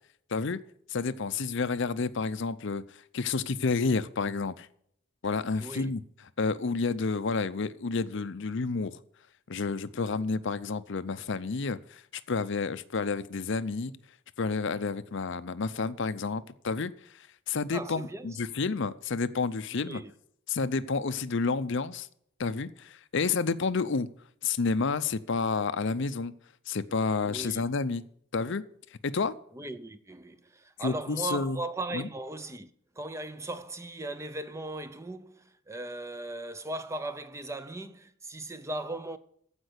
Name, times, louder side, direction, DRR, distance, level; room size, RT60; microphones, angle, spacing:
voice 1, 0.3-0.6 0.9-2.8 3.1-4.7 5.2-6.0 6.4-9.0 9.5-12.0 12.3-13.9 14.4-16.9 17.5-20.0 20.5-22.1 22.4-24.1 24.4-26.3 26.7-28.0 28.3-28.6 29.0-29.4 30.8-31.6 31.9-32.1, left 4 dB, 60° left, 0.6 m, -30 dB
voice 2, 5.6-6.0 17.7-18.4 19.8-20.1 27.2-27.7 29.5-32.7 33.0-39.2, right 2 dB, 15° right, 0.6 m, -38 dB
14.5 x 5.2 x 8.0 m
head